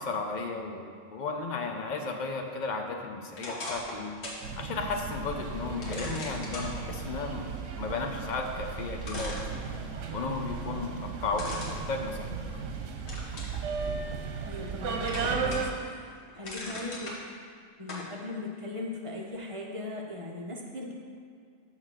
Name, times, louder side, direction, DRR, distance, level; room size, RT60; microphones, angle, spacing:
voice 1, 0.0-4.2 4.6-7.5 7.8-9.6 10.1-12.3, left 4 dB, 45° left, 3 dB, 0.8 m, -34 dB
sound 1, 3.4-4.5 4.9-5.0 5.8-6.7 8.5-8.6 9.0-10.1 11.3-12.6 13.1-13.6 14.1-14.8 15.1-15.8 16.2-17.2 17.9-18.1, left 2 dB, 65° left, 1.7 m, -39 dB
sound 2, 4.4-15.7, right 5 dB, 80° right, 1.1 m, -35 dB
voice 2, 14.5-17.1 17.8-20.9, left 2 dB, 30° right, -1 dB, 1.0 m, -39 dB
6.4 x 5.6 x 6.5 m, 2.2 s
omnidirectional pair, 1.2 m